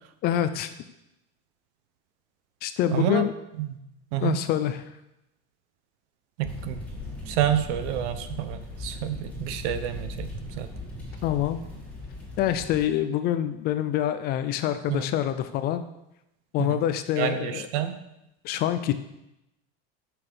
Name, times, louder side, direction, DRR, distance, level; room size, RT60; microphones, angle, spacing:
voice 1, 0.2-0.7 2.6-3.3 4.2-4.8 11.2-11.6 12.4-15.8 16.5-17.6 18.4-18.9, left 11 dB, 30° left, 10 dB, 0.4 m, -26 dB
voice 2, 2.9-3.3 3.6-3.8 4.1-4.4 6.4-6.8 7.3-10.3 10.5-10.7 14.9-15.1 16.6-16.8 17.2-18.0, right 11 dB, 85° right, 10 dB, 1.1 m, -28 dB
sound 1, 6.4-12.8, left 1 dB, 5° left, 2.1 m, -38 dB
8.8 x 6.1 x 6.8 m, 0.88 s
cardioid pair, 175°, 34 cm